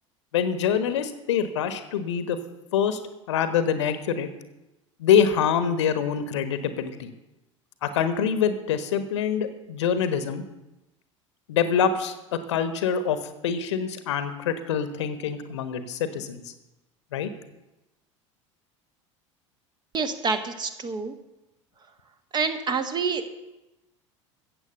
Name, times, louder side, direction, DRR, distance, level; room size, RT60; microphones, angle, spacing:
voice 1, 0.3-2.4 2.7-3.0 3.3-4.3 5.0-7.1 7.8-10.4 11.5-16.5 17.1-17.3, left 7 dB, 65° left, 11 dB, 1.2 m, -25 dB
voice 2, 19.9-21.1 22.3-23.3, right 4 dB, 25° right, 8 dB, 1.4 m, -27 dB
15.0 x 8.0 x 6.8 m, 0.97 s
figure-of-eight pair, 75°, 16 cm